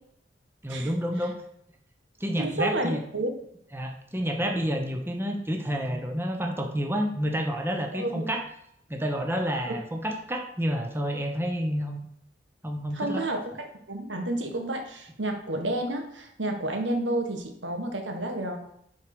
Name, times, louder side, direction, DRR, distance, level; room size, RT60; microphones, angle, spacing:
voice 1, 0.6-1.4 2.2-3.0 3.7-8.5 8.9-12.0 12.6-13.2, equal, 15° right, 3 dB, 1.0 m, -29 dB
voice 2, 2.4-3.3 7.9-8.2 12.9-18.6, right 1 dB, 85° right, 4 dB, 1.6 m, -30 dB
9.6 x 4.6 x 6.0 m, 0.73 s
head